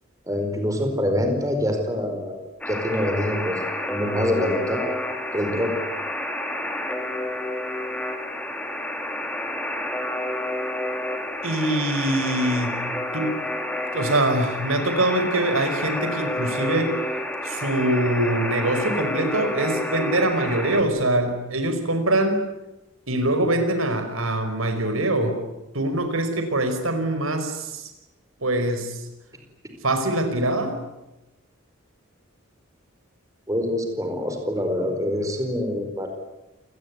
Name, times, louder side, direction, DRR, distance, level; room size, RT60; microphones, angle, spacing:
voice 1, 0.2-3.6 3.9-4.8 5.3-5.7 33.5-36.1, left 1 dB, 15° right, 5 dB, 4.6 m, -25 dB
Alarm, 2.6-20.8, left 1 dB, 5° left, 3.3 m, -29 dB
voice 2, 11.4-12.8 13.1-13.3 13.9-16.9 17.4-22.4 23.1-25.4 25.7-27.9 28.4-29.1 29.8-30.8, right 1 dB, 75° right, 7 dB, 5.1 m, -23 dB
29.0 x 20.0 x 9.6 m, 0.97 s
head